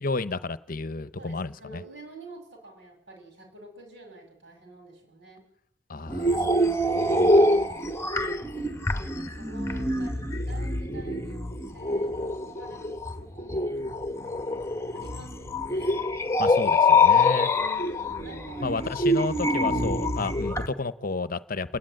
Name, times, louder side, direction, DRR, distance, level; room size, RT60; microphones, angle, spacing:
voice 1, 0.0-1.8 5.9-7.3 8.7-8.8 16.4-17.5 18.6-21.8, left 3 dB, 50° left, 0.8 m, -32 dB
voice 2, 1.2-5.5 7.3-14.5 14.9-16.1 17.5-18.8 19.8-20.1 21.7-21.8, right 2 dB, 75° right, 6.4 m, -48 dB
sound 1, 6.1-20.7, left 2 dB, 15° left, 1.2 m, -25 dB
29.0 x 10.5 x 9.0 m
head